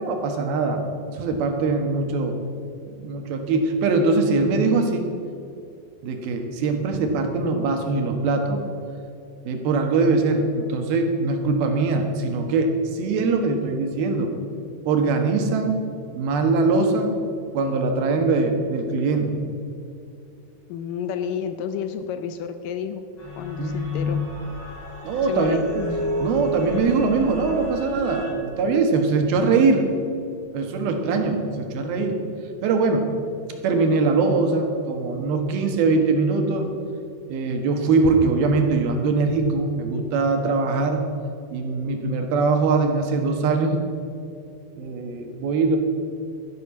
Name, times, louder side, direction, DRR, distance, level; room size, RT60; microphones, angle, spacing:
voice 1, 0.0-2.4 2.9-5.1 6.0-8.6 9.4-14.3 14.8-15.8 16.1-17.1 17.5-19.4 23.6-23.8 25.0-25.6 26.2-29.9 30.5-32.2 32.6-33.1 33.6-36.7 37.3-41.0 41.5-43.8 44.8-45.8, right 3 dB, 80° right, 4 dB, 3.3 m, -22 dB
voice 2, 20.7-23.1 23.4-24.2 25.3-26.0, left 8 dB, 75° left, 9 dB, 2.1 m, -30 dB
sound 1, 23.2-28.3, left 2 dB, 30° left, 3.6 m, -31 dB
13.5 x 10.5 x 7.2 m, 2.5 s
omnidirectional pair, 4.3 m